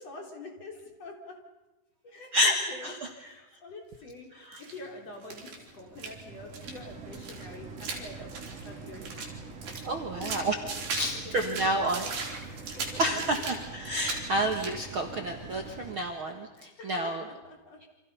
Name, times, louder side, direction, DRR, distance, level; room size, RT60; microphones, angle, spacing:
voice 1, 0.0-1.4 2.0-8.3 8.6-9.3 10.1-10.6 10.8-10.9 11.2-12.1 12.5-13.2 16.6-17.9, left 2 dB, 35° left, 2 dB, 4.6 m, -46 dB
sound 1, 4.5-4.8 5.2-6.2 6.5-6.8 7.1-9.3 9.6-11.1 11.4-13.6 13.9-14.2 14.5-14.9, right 4 dB, 55° right, 5.5 m, -38 dB
sound 2, 4.7-15.9, right 4 dB, 40° right, 3.8 m, -45 dB
voice 2, 9.8-10.5 10.9-12.1 13.0-17.2, right 1 dB, 80° right, 4 dB, 1.1 m, -29 dB
29.5 x 27.0 x 5.6 m, 1.1 s
omnidirectional pair, 5.0 m